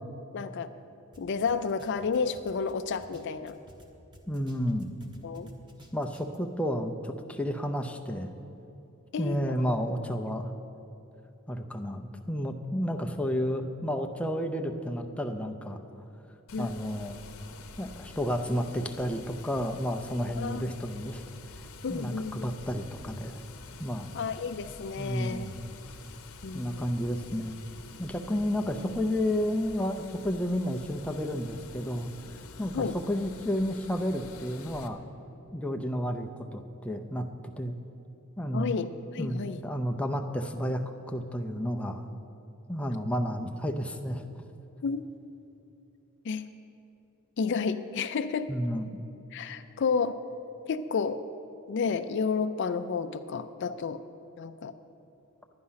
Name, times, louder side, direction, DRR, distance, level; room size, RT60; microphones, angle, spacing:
voice 1, 0.3-0.7 1.2-3.6 5.2-5.5 9.1-9.7 16.5-16.7 20.4-20.6 21.8-22.5 24.1-25.5 26.4-26.9 32.7-32.9 38.5-38.9 39.1-39.7 44.8-45.0 46.2-46.4 47.4-48.5 49.3-50.2 50.7-51.2 51.7-54.0 54.4-54.7, left 5 dB, 55° left, 10 dB, 0.4 m, -31 dB
sound 1, 1.1-1.2 1.5-3.9 4.1-6.4, right 1 dB, 20° right, 1.1 m, -52 dB
voice 2, 4.3-4.9 5.9-8.3 9.2-10.5 11.5-15.8 16.6-17.2 17.8-21.2 21.9-23.4 23.8-24.1 25.0-25.5 26.5-27.6 28.0-32.1 32.6-35.0 35.5-37.3 37.6-37.8 38.4-38.7 39.2-42.1 42.7-44.2 48.5-49.0, equal, 5° left, 3 dB, 0.5 m, -31 dB
Water, 16.5-34.9, left 4 dB, 80° left, 0.8 m, -48 dB
11.5 x 9.7 x 5.6 m, 2.8 s
head